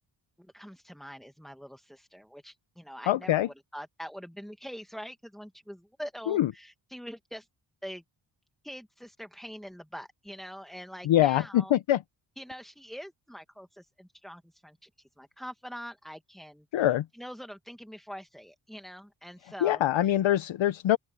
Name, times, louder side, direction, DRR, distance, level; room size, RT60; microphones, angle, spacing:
voice 1, 0.4-7.5 7.8-8.0 8.6-11.7 12.4-16.9 17.1-20.1, equal, ahead, 1.5 m, -44 dB
voice 2, 3.1-3.5 6.3-6.5 11.1-12.0 16.7-17.1 19.6-21.0, left 12 dB, 70° left, 0.9 m, -24 dB
open air
cardioid pair, 60°, 49 cm